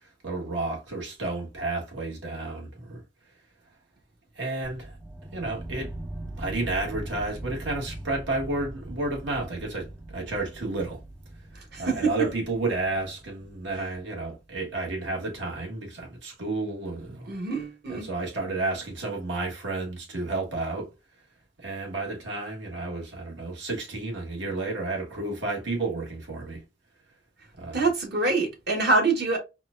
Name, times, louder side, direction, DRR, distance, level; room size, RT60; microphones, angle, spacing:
voice 1, 0.2-3.0 4.3-5.0 5.3-5.9 6.4-11.0 11.8-17.4 17.9-20.9 21.6-26.6 27.6-27.8, right 2 dB, 80° right, 1.5 m, -31 dB
sound 1, 4.6-14.4, right 1 dB, 5° right, 0.3 m, -41 dB
voice 2, 11.5-12.3 17.3-18.1 27.7-29.4, right 3 dB, 60° right, 1.3 m, -25 dB
4.3 x 2.4 x 2.5 m
head